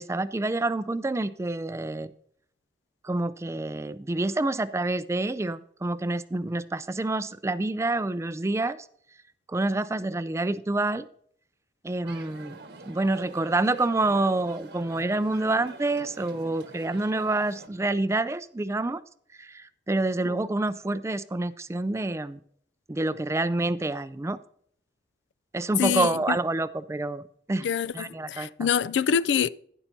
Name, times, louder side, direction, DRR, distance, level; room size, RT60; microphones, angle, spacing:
voice 1, 0.0-2.1 3.0-8.9 9.5-11.1 11.8-12.6 12.9-19.0 19.4-22.4 22.9-24.4 25.5-27.7 27.9-28.7, right 2 dB, 15° right, 0.4 m, -27 dB
sound 1, 12.1-17.7, right 3 dB, 70° right, 1.3 m, -45 dB
voice 2, 25.8-26.4 27.6-29.5, left 7 dB, 80° left, 0.3 m, -26 dB
11.5 x 10.0 x 2.7 m
head